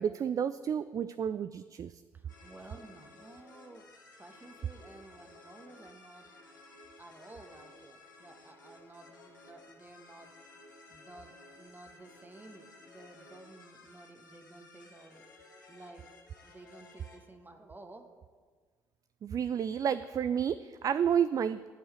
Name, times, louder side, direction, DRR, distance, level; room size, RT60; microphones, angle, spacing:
voice 1, 0.0-1.9 19.2-21.7, right 8 dB, 35° right, 13 dB, 0.4 m, -31 dB
voice 2, 2.1-3.8 4.2-6.3 7.0-10.3 10.9-15.3 15.7-16.0 16.4-18.0, right 2 dB, 20° right, 5 dB, 1.6 m, -53 dB
sound 1, 2.3-17.2, left 2 dB, 85° left, 1.5 m, -56 dB
11.5 x 5.5 x 8.2 m, 1.5 s
figure-of-eight pair, 50°, 10 cm